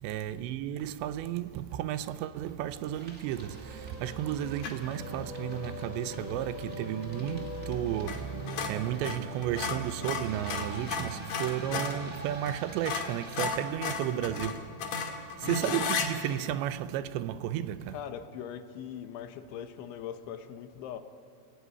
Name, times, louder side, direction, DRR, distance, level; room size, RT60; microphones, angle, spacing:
voice 1, 0.0-14.7 15.4-18.0, right 11 dB, 80° right, 2.9 m, -33 dB
sound 1, 1.3-1.4 1.7-2.5 2.8-13.5, right 1 dB, 25° right, 2.1 m, -49 dB
sound 2, 3.4-10.8, left 3 dB, 50° right, 7.6 m, -44 dB
sound 3, 4.6-4.9 8.0-8.2 8.5-12.0 12.5-12.6 12.8-16.1, left 5 dB, 55° left, 3.0 m, -34 dB
voice 2, 14.0-14.7 17.9-21.0, left 9 dB, 90° left, 3.7 m, -41 dB
29.5 x 17.5 x 9.7 m
omnidirectional pair, 5.2 m